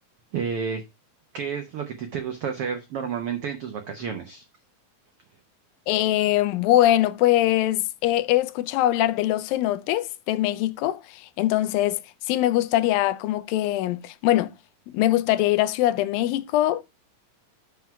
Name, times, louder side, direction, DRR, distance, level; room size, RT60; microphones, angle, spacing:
voice 1, 0.3-0.8 1.3-4.4, right 6 dB, 90° right, 1.2 m, -30 dB
voice 2, 5.9-12.0 12.3-14.5 14.9-16.8, left 14 dB, 85° left, 2.3 m, -22 dB
6.2 x 5.8 x 5.8 m
omnidirectional pair, 4.0 m